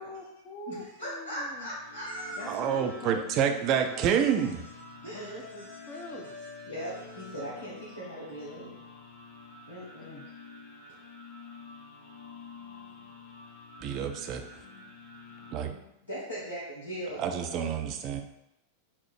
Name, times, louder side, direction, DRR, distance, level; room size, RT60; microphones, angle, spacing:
voice 1, 0.0-1.7 2.4-4.2 5.0-6.3 10.1-10.2 14.6-14.9 15.4-16.0 17.2-17.3, left 2 dB, 30° left, 1 dB, 0.6 m, -45 dB
voice 2, 0.7-2.4 5.0-5.3 6.7-8.8 9.7-10.2 16.1-17.8, equal, 75° left, -9 dB, 1.0 m, -39 dB
sound 1, 1.4-15.6, left 4 dB, 55° left, 1.2 m, -49 dB
sound 2, 1.9-7.8, left 1 dB, 80° right, 1.0 m, -50 dB
voice 3, 2.5-4.6 13.8-14.4 15.5-15.7 17.2-18.2, right 8 dB, 40° right, 6 dB, 0.4 m, -28 dB
4.3 x 2.0 x 4.6 m, 0.87 s
figure-of-eight pair, 90°, 0 cm